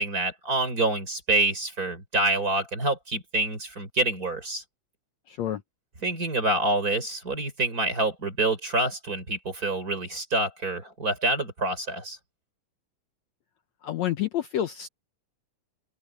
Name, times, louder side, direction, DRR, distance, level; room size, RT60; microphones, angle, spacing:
voice 1, 0.0-4.6 6.0-12.2, right 2 dB, 25° right, 4.5 m, -27 dB
voice 2, 5.3-5.6 13.8-14.9, left 11 dB, 65° left, 2.0 m, -28 dB
open air
omnidirectional pair, 3.8 m